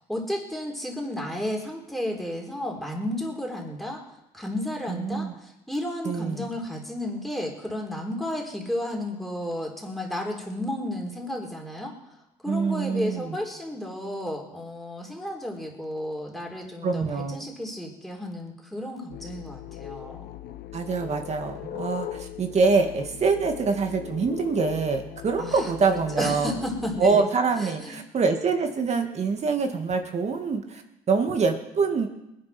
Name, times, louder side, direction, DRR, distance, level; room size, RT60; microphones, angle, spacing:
voice 1, 0.1-4.0 4.3-11.9 12.4-20.3 25.4-27.2 27.6-28.0, left 1 dB, ahead, 0 dB, 3.9 m, -32 dB
voice 2, 4.9-5.3 6.1-6.5 12.5-13.4 16.8-17.5 20.7-26.6 27.0-30.8 31.1-32.1, right 4 dB, 40° right, 5 dB, 2.1 m, -25 dB
sound 1, 19.1-27.2, left 12 dB, 75° left, 1.0 m, -39 dB
21.0 x 10.5 x 6.0 m, 0.91 s
cardioid pair, 110°, 17 cm